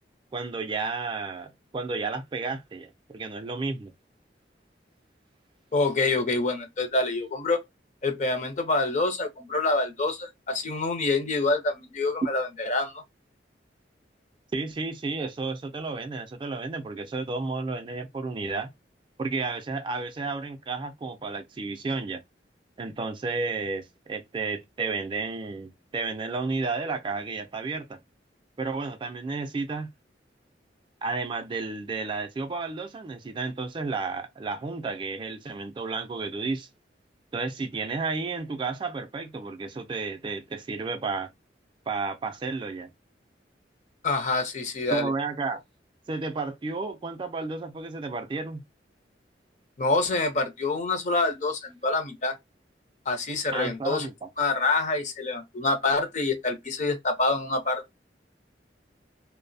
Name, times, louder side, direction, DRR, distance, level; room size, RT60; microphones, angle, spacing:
voice 1, 0.3-3.9 14.5-18.7 19.2-22.2 22.8-28.0 28.6-29.9 31.0-36.7 37.3-41.3 41.9-42.9 44.9-45.6 46.1-48.6 53.5-54.3, right 3 dB, 25° right, 0.3 m, -32 dB
voice 2, 5.7-7.6 8.0-13.0 44.0-45.1 49.8-52.4 53.1-54.1 54.4-57.8, left 3 dB, 40° left, 0.5 m, -26 dB
2.6 x 2.0 x 2.5 m
head